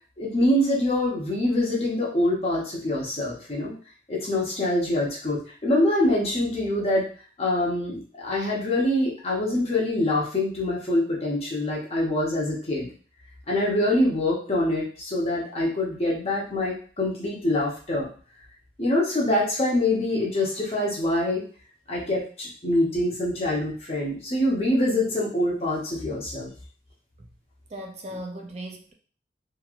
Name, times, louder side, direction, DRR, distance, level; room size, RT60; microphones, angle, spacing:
voice 1, 0.2-3.7 4.1-7.1 7.4-12.9 13.5-18.1 18.8-21.4 21.9-26.5, left 1 dB, 35° left, -4 dB, 0.8 m, -25 dB
voice 2, 27.7-28.9, right 1 dB, 35° right, 2 dB, 0.5 m, -37 dB
3.0 x 2.8 x 2.4 m, 0.42 s
head